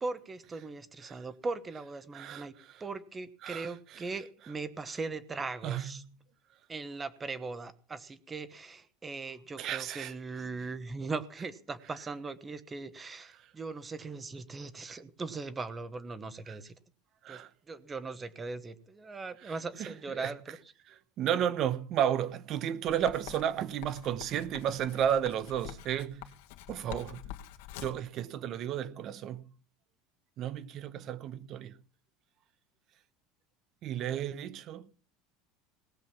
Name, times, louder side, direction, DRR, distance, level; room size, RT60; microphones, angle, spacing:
voice 1, 0.0-2.5 2.8-6.0 6.7-16.7 17.3-17.4 17.7-20.6 34.1-34.2, right 3 dB, 15° right, 1.1 m, -39 dB
voice 2, 2.1-2.8 3.4-4.1 5.6-5.9 9.6-10.1 13.3-13.5 14.9-15.0 16.5-16.6 17.2-17.5 19.4-20.4 20.9-26.3 26.7-27.3 27.8-29.5 30.4-31.8 33.8-34.9, right 10 dB, 35° right, 0.9 m, -33 dB
Writing, 22.9-28.1, left 12 dB, 75° left, 2.0 m, -46 dB
18.5 x 7.9 x 7.1 m
cardioid pair, 170°, 0 cm